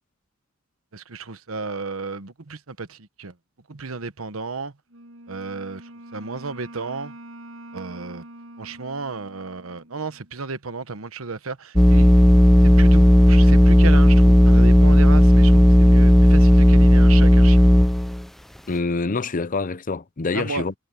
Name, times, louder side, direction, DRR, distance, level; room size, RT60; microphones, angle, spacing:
voice 1, 0.9-3.3 3.7-4.7 5.3-7.1 7.7-8.2 8.6-12.1 12.6-17.6 20.3-20.6, right 4 dB, 85° right, 1.2 m, -33 dB
Wind instrument woodwind instrument, 4.9-10.4, right 1 dB, 70° right, 6.5 m, -44 dB
sound 1, 11.8-18.2, equal, ahead, 0.3 m, -13 dB
voice 2, 18.7-20.7, left 3 dB, 40° left, 0.6 m, -26 dB
head